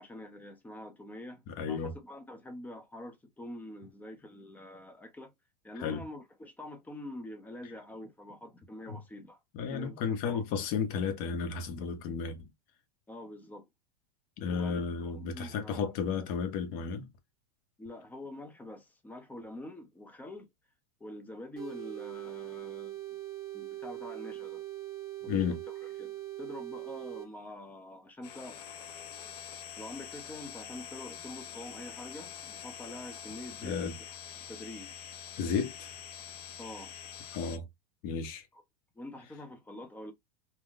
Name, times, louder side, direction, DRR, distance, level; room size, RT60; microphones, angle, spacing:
voice 1, 0.0-5.3 5.6-9.4 9.7-10.0 10.2-10.7 13.1-13.7 14.5-15.8 17.8-20.5 21.0-23.2 23.5-24.6 25.2-28.6 29.8-33.8 34.4-35.0 36.6-36.9 38.5-38.6 39.0-40.1, left 1 dB, 10° left, 0.7 m, -46 dB
voice 2, 1.5-1.9 5.8-6.1 8.9-9.0 9.5-12.5 14.4-17.1 25.2-25.6 33.6-33.9 35.4-36.0 37.3-37.7 38.0-38.5, left 6 dB, 45° left, 0.8 m, -33 dB
sound 1, 21.6-27.3, right 15 dB, 25° right, 1.4 m, -41 dB
sound 2, 28.2-37.6, left 9 dB, 75° left, 0.8 m, -45 dB
3.6 x 2.2 x 2.4 m
supercardioid pair, 125°, 21 cm